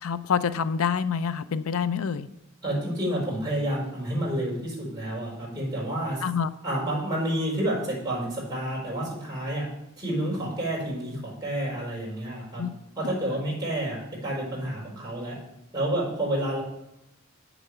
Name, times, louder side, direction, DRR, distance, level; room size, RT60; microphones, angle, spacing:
voice 1, 0.0-2.3 6.2-6.5 12.6-12.7, left 6 dB, 90° left, 14 dB, 0.5 m, -27 dB
voice 2, 2.6-6.2 6.6-9.7 10.0-12.6 13.0-15.4 15.7-16.6, right 1 dB, 20° right, -4 dB, 4.7 m, -29 dB
8.3 x 6.9 x 6.8 m, 0.89 s
head